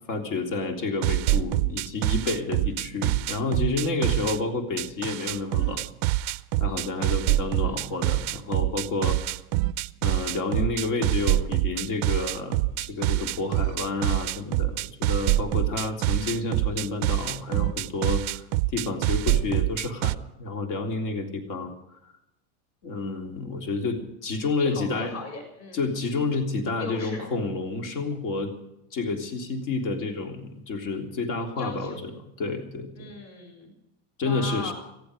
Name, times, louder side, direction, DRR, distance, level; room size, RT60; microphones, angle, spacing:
voice 1, 0.1-5.9 6.6-9.2 10.0-18.2 18.7-21.7 22.8-25.2 25.7-28.5 28.9-32.1 32.4-33.1 34.2-34.7, left 3 dB, 60° left, 3 dB, 3.5 m, -30 dB
sound 1, 1.0-4.4 4.8-20.2, right 17 dB, 45° right, 0.5 m, -25 dB
voice 2, 7.2-7.9 24.6-25.9 26.8-27.3 31.6-32.0 33.0-33.7 34.2-34.7, left 3 dB, 45° left, 3 dB, 6.9 m, -39 dB
18.5 x 15.0 x 5.1 m, 0.84 s
cardioid pair, 175°, 33 cm